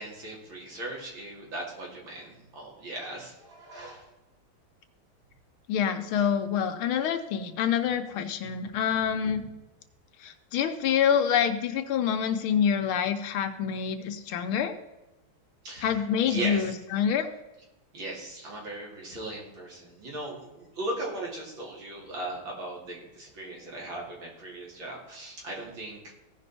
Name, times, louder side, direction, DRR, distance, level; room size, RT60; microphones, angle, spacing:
voice 1, 0.0-4.1 6.2-6.3 15.6-16.7 17.9-26.0, right 1 dB, 65° right, -3 dB, 3.3 m, -38 dB
voice 2, 5.7-9.4 10.2-14.7 15.8-17.3, left 8 dB, 80° left, 7 dB, 1.6 m, -26 dB
16.0 x 5.4 x 4.2 m, 0.98 s
omnidirectional pair, 2.3 m